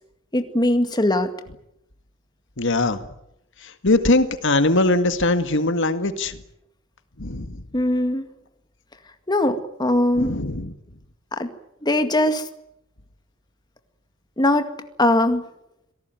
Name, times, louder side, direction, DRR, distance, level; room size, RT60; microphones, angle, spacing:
voice 1, 0.3-1.3 7.7-8.3 9.3-10.4 11.4-11.5 11.8-12.4 14.4-14.7 15.0-15.5, left 1 dB, 20° left, 7 dB, 2.0 m, -20 dB
voice 2, 2.6-3.1 3.6-6.4 7.2-7.6 10.2-10.7, left 2 dB, 60° left, 10 dB, 1.9 m, -21 dB
26.5 x 18.0 x 9.3 m, 0.80 s
head